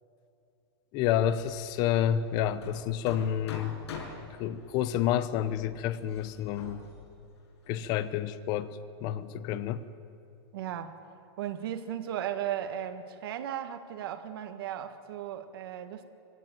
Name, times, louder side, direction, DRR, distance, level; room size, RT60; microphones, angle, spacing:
voice 1, 0.9-3.8 4.4-6.8 7.7-9.8, left 10 dB, 30° left, 14 dB, 0.7 m, -29 dB
Hammer, 1.2-8.1, left 5 dB, 80° left, 6.1 m, -46 dB
voice 2, 10.5-10.9 11.4-16.0, right 10 dB, 60° right, 7 dB, 1.6 m, -36 dB
22.5 x 17.0 x 9.1 m, 2.6 s
supercardioid pair, 165°, 14 cm